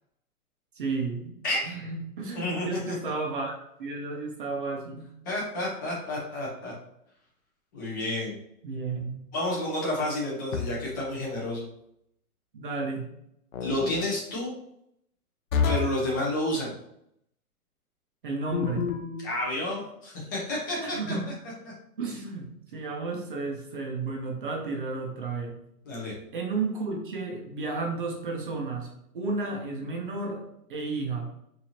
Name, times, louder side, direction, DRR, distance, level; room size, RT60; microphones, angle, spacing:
voice 1, 0.8-3.5 3.8-5.1 8.6-9.1 12.5-13.1 18.2-18.9 20.8-21.3 22.0-25.6 26.3-30.4 30.7-31.3, right 3 dB, 35° right, 1 dB, 0.6 m, -32 dB
voice 2, 2.3-2.9 5.2-6.7 7.7-8.4 9.3-11.6 13.6-14.5 15.6-16.7 19.2-21.0 25.8-26.1, left 1 dB, 15° left, -4 dB, 0.5 m, -30 dB
sound 1, 10.5-11.0 13.5-14.0 15.5-16.1 18.5-19.2, left 6 dB, 60° left, 0.7 m, -28 dB
4.5 x 2.7 x 2.8 m, 0.76 s
hypercardioid pair, 155°, 46 cm